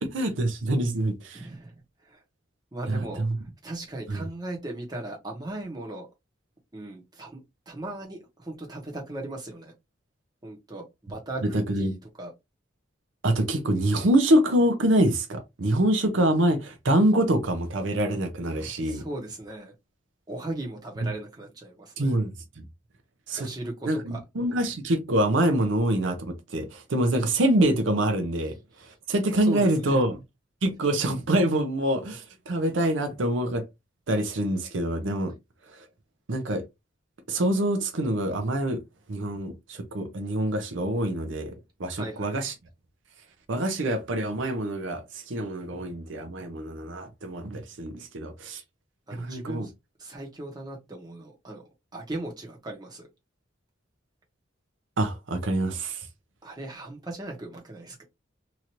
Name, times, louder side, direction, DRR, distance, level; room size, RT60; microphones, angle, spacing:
voice 1, 0.0-1.4 2.9-3.4 4.1-4.2 11.4-11.9 13.2-19.0 22.0-22.3 23.3-23.5 23.8-28.5 29.1-30.2 30.6-33.6 34.1-35.3 36.3-36.6 37.3-38.8 39.1-42.5 43.5-48.6 49.1-49.7 55.0-56.1, right 1 dB, 75° right, 0.6 m, -25 dB
voice 2, 1.3-1.7 2.1-2.2 2.7-3.2 3.6-6.1 6.7-7.4 7.7-9.7 10.4-10.8 11.1-12.3 18.8-19.7 20.3-22.1 23.4-24.2 29.4-30.1 42.0-42.4 49.1-49.7 50.0-51.6 51.9-53.1 56.4-58.0, right 2 dB, 20° right, 0.9 m, -37 dB
2.9 x 2.5 x 2.9 m
head